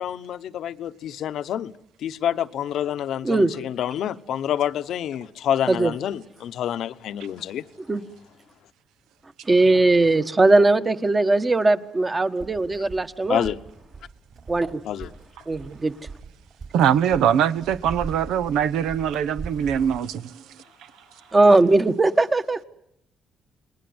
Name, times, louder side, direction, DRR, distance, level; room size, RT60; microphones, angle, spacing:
voice 1, 0.0-1.7 2.0-7.7 13.3-13.6 14.8-15.1, left 10 dB, 75° left, 0.9 m, -27 dB
voice 2, 9.4-13.5 14.5-14.8 15.5-15.9 21.3-22.6, right 2 dB, 25° right, 1.3 m, -19 dB
sound 1, 12.4-20.0, right 4 dB, 55° right, 5.3 m, -41 dB
voice 3, 16.7-20.4, right 9 dB, 90° right, 0.9 m, -22 dB
28.5 x 20.5 x 7.9 m
cardioid pair, 90°, 0 cm